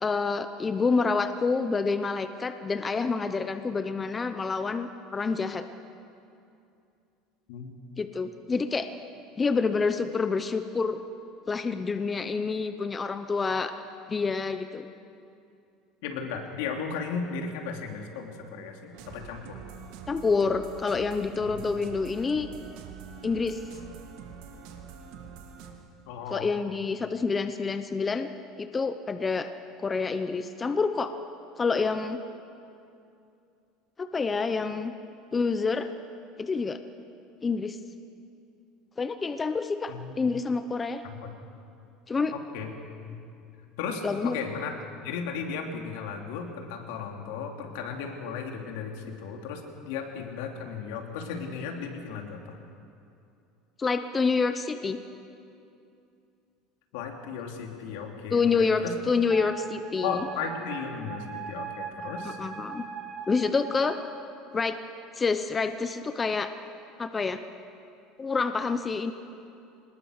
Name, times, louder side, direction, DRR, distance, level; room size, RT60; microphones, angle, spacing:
voice 1, 0.0-5.7 8.0-8.9 9.4-11.0 11.5-13.7 14.1-14.8 20.1-22.5 23.2-23.6 26.3-28.3 28.6-29.5 29.8-31.1 31.6-32.2 34.0-34.9 35.3-35.9 36.4-36.8 37.4-37.8 39.0-41.0 42.1-42.3 44.0-44.4 53.8-55.0 58.3-60.3 62.4-62.8 63.3-64.0 64.5-64.8 65.2-66.5 67.0-67.4 68.2-69.1, left 4 dB, 20° left, 9 dB, 0.8 m, -27 dB
voice 2, 16.0-19.6 21.5-21.6 26.1-26.5 39.9-40.2 41.0-41.3 42.3-42.7 43.0-43.2 43.8-44.7 45.0-52.6 56.9-58.9 60.0-62.4, left 6 dB, 80° left, 2 dB, 3.1 m, -35 dB
sound 1, 18.9-25.7, right 7 dB, 70° right, 2.6 m, -44 dB
Wind instrument woodwind instrument, 59.3-64.0, right 7 dB, 35° right, 3.5 m, -40 dB
25.0 x 20.5 x 6.6 m, 2.6 s
cardioid pair, 140°, 0 cm